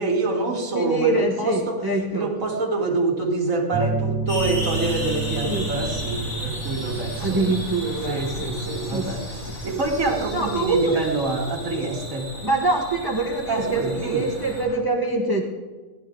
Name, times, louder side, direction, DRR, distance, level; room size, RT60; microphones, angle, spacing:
voice 1, 0.0-1.8 2.1-7.5 8.1-9.2 9.6-12.3 13.5-14.3, right 3 dB, 65° right, 1 dB, 2.1 m, -26 dB
voice 2, 0.7-2.3 5.4-5.7 7.2-9.6 10.3-11.0 12.4-15.4, right 2 dB, 15° right, 0 dB, 1.1 m, -25 dB
sound 1, 3.7-11.4, right 5 dB, 80° right, 2.4 m, -32 dB
sound 2, 4.3-14.6, left 1 dB, 75° left, 5.9 m, -35 dB
sound 3, 4.5-14.8, left 3 dB, 20° left, 1.7 m, -41 dB
17.0 x 11.0 x 3.8 m, 1.4 s
omnidirectional pair, 1.5 m